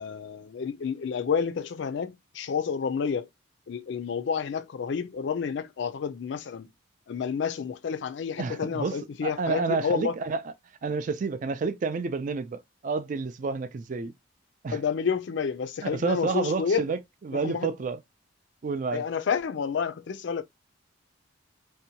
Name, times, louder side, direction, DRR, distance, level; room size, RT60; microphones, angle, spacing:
voice 1, 0.0-3.3 3.7-6.7 7.1-10.2 14.7-16.8 17.4-17.7 18.9-20.4, left 6 dB, 65° left, 0.4 m, -29 dB
voice 2, 8.4-9.0 9.2-10.4 10.8-14.1 14.6-14.8 15.8-18.0 18.6-19.0, right 4 dB, 40° right, 0.3 m, -29 dB
2.7 x 2.2 x 2.7 m
head